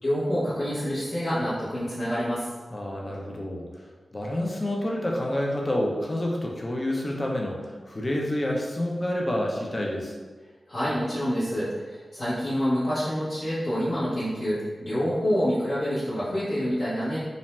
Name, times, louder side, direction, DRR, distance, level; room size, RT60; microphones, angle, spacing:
voice 1, 0.0-2.5 10.7-17.2, equal, 55° left, -12 dB, 0.8 m, -27 dB
voice 2, 2.7-10.2, left 1 dB, 30° left, -1 dB, 0.5 m, -29 dB
2.6 x 2.1 x 3.0 m, 1.4 s
wide cardioid pair, 60°, 0 cm